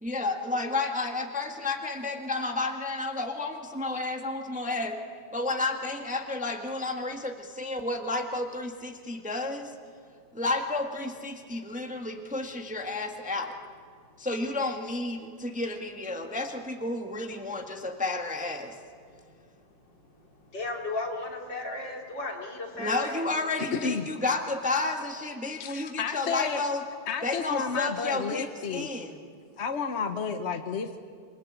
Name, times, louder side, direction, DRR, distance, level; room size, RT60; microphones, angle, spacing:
voice 1, 0.0-5.0 5.3-9.7 10.3-13.5 14.2-18.7 22.8-26.8 27.2-29.1, left 2 dB, 5° right, 4 dB, 1.4 m, -31 dB
voice 2, 20.5-23.3, left 2 dB, 65° left, 1 dB, 3.8 m, -35 dB
voice 3, 23.6-24.1 25.6-26.6 27.1-28.9 29.6-31.0, left 5 dB, 45° left, 7 dB, 1.0 m, -31 dB
27.5 x 23.0 x 8.5 m, 2.1 s
omnidirectional pair, 2.1 m